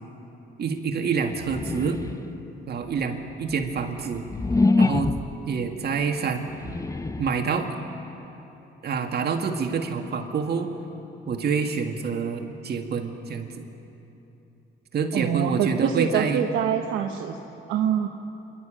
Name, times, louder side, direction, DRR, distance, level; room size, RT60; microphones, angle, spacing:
voice 1, 0.6-2.0 2.7-4.2 4.8-5.1 5.4-6.5 7.2-7.7 8.8-10.7 11.3-13.6 14.9-16.4, right 5 dB, 55° right, 4 dB, 1.9 m, -27 dB
sound 1, 1.3-2.4 3.0-5.5 6.4-7.5, left 3 dB, 15° left, 0.6 m, -25 dB
voice 2, 15.1-17.4 17.7-18.1, right 8 dB, 90° right, 3 dB, 1.0 m, -25 dB
27.5 x 12.0 x 9.0 m, 3.0 s
cardioid pair, 90°, 20 cm